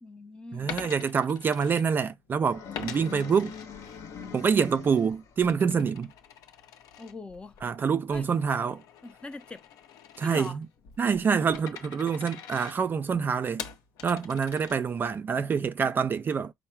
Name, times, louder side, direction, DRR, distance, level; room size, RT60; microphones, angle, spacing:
voice 1, 0.0-0.7 7.0-7.6 8.1-8.3 9.0-9.6 10.2-10.6, left 2 dB, 15° left, 0.5 m, -41 dB
voice 2, 0.5-3.5 4.3-6.1 7.6-8.8 10.2-10.7 11.0-13.6 14.0-16.5, right 6 dB, 35° right, 0.3 m, -26 dB
Coin (dropping), 0.6-2.3 2.7-4.3 4.7-15.2, left 8 dB, 75° left, 0.7 m, -45 dB
sound 1, 2.4-5.3, left 7 dB, 55° left, 0.9 m, -43 dB
4.5 x 2.1 x 4.4 m
cardioid pair, 115°, 6 cm